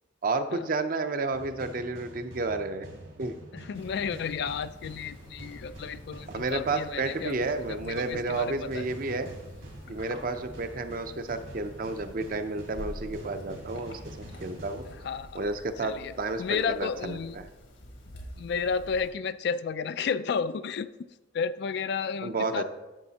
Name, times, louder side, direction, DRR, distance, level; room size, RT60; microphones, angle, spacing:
voice 1, 0.2-2.9 3.2-3.4 6.3-9.3 9.9-14.0 14.4-14.8 15.3-17.5 22.2-22.6, right 3 dB, 45° right, 9 dB, 0.6 m, -31 dB
sound 1, 1.3-15.5, right 1 dB, 75° right, 2.1 m, -46 dB
voice 2, 3.5-7.3 7.7-8.8 14.9-15.4 15.8-16.1 16.4-17.4 18.4-20.9 21.3-22.6, left 6 dB, 60° left, 14 dB, 0.3 m, -32 dB
sound 2, 3.7-19.1, left 1 dB, 80° left, 1.7 m, -48 dB
11.0 x 7.2 x 2.8 m, 1.1 s
head